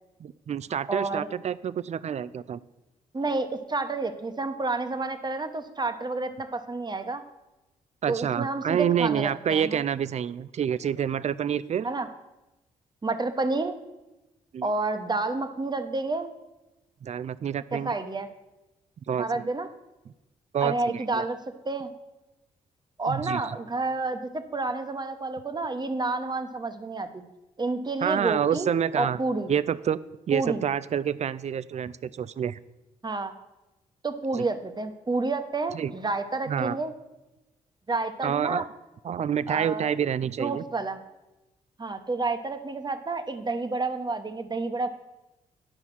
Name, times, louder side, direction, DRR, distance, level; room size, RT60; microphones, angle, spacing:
voice 1, 0.2-2.6 8.0-11.9 14.5-14.7 17.0-17.9 19.1-19.5 20.5-21.2 23.1-23.4 28.0-29.2 29.5-30.0 30.3-32.6 34.3-34.4 35.7-35.9 36.5-36.8 38.2-38.7 39.0-40.6, right 8 dB, 50° right, 17 dB, 0.4 m, -28 dB
voice 2, 0.9-1.3 3.1-7.2 8.1-9.8 11.8-12.1 13.0-13.8 14.6-16.3 17.7-18.3 19.2-19.7 20.6-21.4 21.6-21.9 23.0-27.2 27.6-28.7 29.0-29.5 30.3-30.6 33.0-33.3 34.0-36.9 37.9-38.6 39.5-39.9 40.4-41.0 41.8-44.9, right 3 dB, 30° right, 8 dB, 1.1 m, -29 dB
10.0 x 5.5 x 6.1 m, 1.0 s
supercardioid pair, 50°, 15 cm